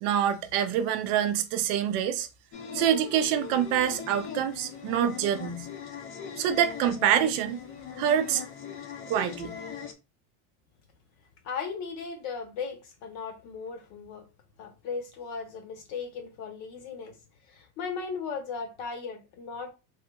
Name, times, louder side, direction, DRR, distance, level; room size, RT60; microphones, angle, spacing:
voice 1, 0.0-2.3 2.7-5.7 6.4-7.6 8.0-8.4 9.1-9.6, right 9 dB, 60° right, 0.5 m, -26 dB
sound 1, 2.5-9.9, left 7 dB, 35° left, 0.5 m, -40 dB
voice 2, 11.4-14.3 14.6-17.2 17.5-19.7, left 5 dB, 50° left, 0.9 m, -37 dB
3.3 x 2.8 x 2.3 m
cardioid pair, 175°, 34 cm